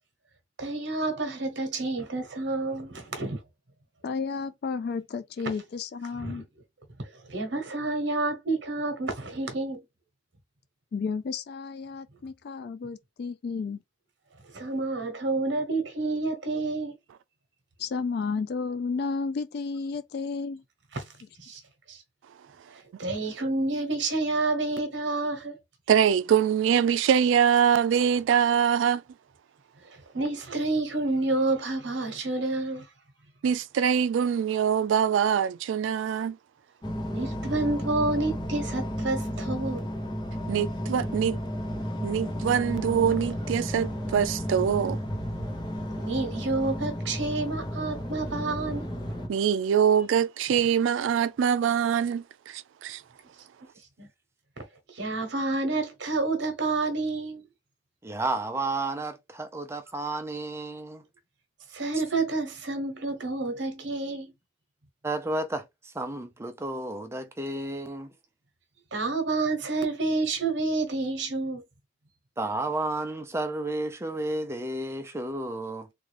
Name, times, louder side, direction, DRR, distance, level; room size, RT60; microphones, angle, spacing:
voice 1, 0.6-3.4 6.2-6.4 7.3-9.8 14.5-16.9 20.9-21.0 21.4-21.6 21.9-22.0 23.0-25.6 30.1-32.8 37.1-39.8 46.0-48.8 54.0-54.1 54.6-54.7 54.9-57.4 61.7-64.3 68.9-71.6, right 2 dB, 65° right, 1.0 m, -29 dB
voice 2, 4.0-6.5 10.9-13.8 17.8-20.6, left 4 dB, 55° left, 0.3 m, -32 dB
voice 3, 25.9-29.0 33.4-36.4 40.5-41.4 42.0-45.0 49.3-53.0, right 8 dB, 85° right, 0.3 m, -24 dB
sound 1, 36.8-49.3, equal, 25° left, 0.7 m, -33 dB
voice 4, 58.0-61.1 65.0-68.1 72.4-75.9, right 2 dB, 15° right, 0.6 m, -32 dB
3.6 x 2.3 x 3.2 m
head